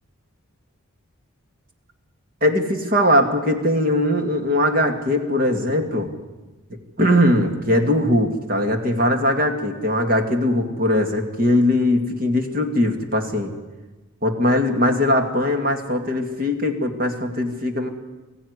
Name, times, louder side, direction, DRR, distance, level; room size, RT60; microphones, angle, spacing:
voice 1, 2.4-6.1 7.0-13.5 14.2-17.9, left 1 dB, 40° right, 5 dB, 2.4 m, -20 dB
21.5 x 15.0 x 9.8 m, 1.2 s
head